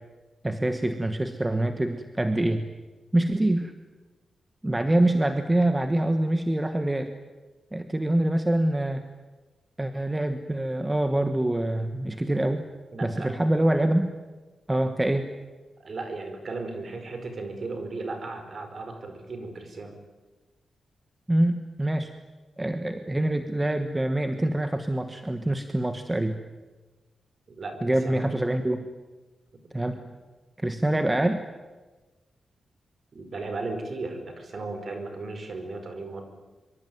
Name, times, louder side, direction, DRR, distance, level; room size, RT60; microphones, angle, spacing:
voice 1, 0.4-2.6 3.1-3.7 4.6-7.1 7.7-9.0 9.8-12.6 13.0-14.1 14.7-15.3 21.3-22.1 22.6-26.4 27.8-28.9 29.7-30.0 30.6-31.4, right 1 dB, 10° right, 7 dB, 1.3 m, -25 dB
voice 2, 12.9-13.4 15.8-19.9 27.5-28.3 29.9-30.0 33.1-36.2, right 3 dB, 40° right, 6 dB, 4.8 m, -36 dB
25.0 x 24.5 x 9.4 m, 1.3 s
wide cardioid pair, 155°, 0 cm